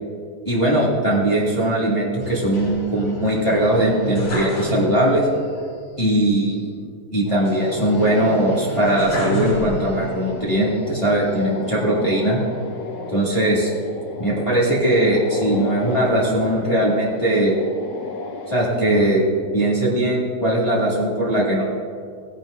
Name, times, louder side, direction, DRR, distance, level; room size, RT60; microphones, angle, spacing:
voice 1, 0.4-5.3 6.0-6.7 7.1-12.4 13.1-13.7 14.2-17.5 18.5-19.2 19.5-21.6, right 1 dB, 20° left, -7 dB, 0.7 m, -20 dB
sound 1, 2.2-5.3 5.6-5.7 7.5-10.2 10.7-11.6, left 1 dB, 45° left, 4.2 m, -30 dB
sound 2, 7.3-19.0, left 4 dB, 90° left, 3.2 m, -34 dB
17.5 x 10.5 x 2.6 m, 2.2 s
omnidirectional pair, 4.2 m